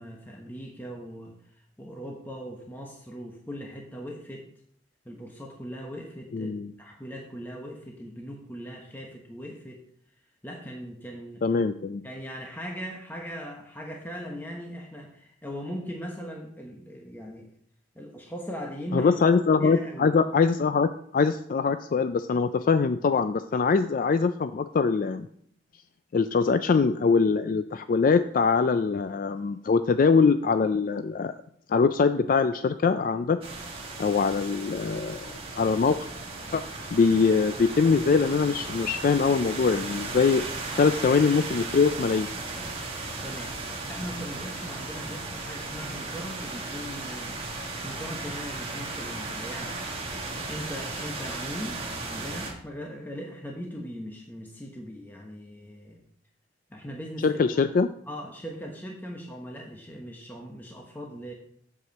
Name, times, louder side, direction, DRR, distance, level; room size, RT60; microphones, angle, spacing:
voice 1, 0.0-4.5 5.0-9.8 10.4-11.4 12.0-17.5 17.9-19.1 19.6-20.1 43.2-49.8 50.5-56.0 56.7-57.8 58.1-61.3, equal, 10° left, 0 dB, 1.0 m, -39 dB
voice 2, 6.3-6.7 11.4-12.0 18.9-25.3 26.1-31.3 31.7-33.4 34.0-36.1 36.5-36.6 36.9-40.4 40.8-42.3 57.2-57.9, left 5 dB, 45° left, 11 dB, 0.3 m, -23 dB
sound 1, 33.4-52.5, right 3 dB, 30° right, 1.8 m, -36 dB
7.9 x 4.8 x 6.9 m, 0.66 s
head